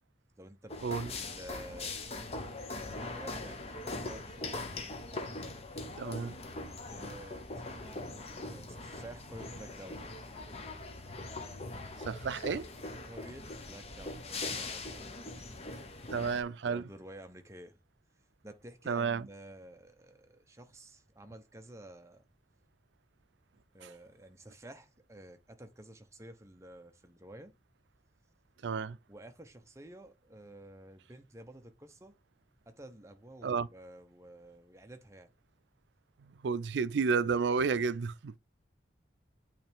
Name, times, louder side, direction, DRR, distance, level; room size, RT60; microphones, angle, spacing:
voice 1, 0.4-2.0 2.8-4.7 6.9-10.1 13.0-15.2 16.6-17.8 18.4-22.2 23.7-27.5 29.1-32.1 32.7-35.3, right 1 dB, 15° right, 0.7 m, -51 dB
sound 1, 0.7-16.4, left 2 dB, 35° left, 0.9 m, -41 dB
voice 2, 6.0-6.3 12.0-12.7 16.1-16.8 18.9-19.2 23.8-23.9 28.6-29.0 33.4-33.7 36.2-38.3, right 5 dB, 75° right, 0.4 m, -31 dB
8.6 x 3.2 x 3.4 m
head